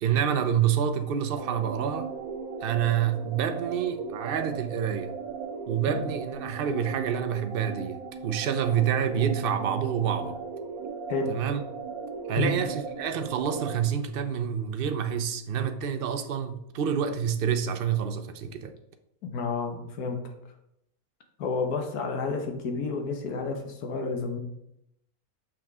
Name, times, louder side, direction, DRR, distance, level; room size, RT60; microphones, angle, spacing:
voice 1, 0.0-2.1 2.6-5.1 5.7-10.4 11.3-11.6 12.3-18.7, right 8 dB, 55° right, 0.6 m, -28 dB
sound 1, 1.3-13.8, right 5 dB, 80° right, 1.2 m, -37 dB
voice 2, 19.2-20.3 21.4-24.4, left 4 dB, 90° left, 1.5 m, -30 dB
6.1 x 5.9 x 3.5 m
omnidirectional pair, 1.6 m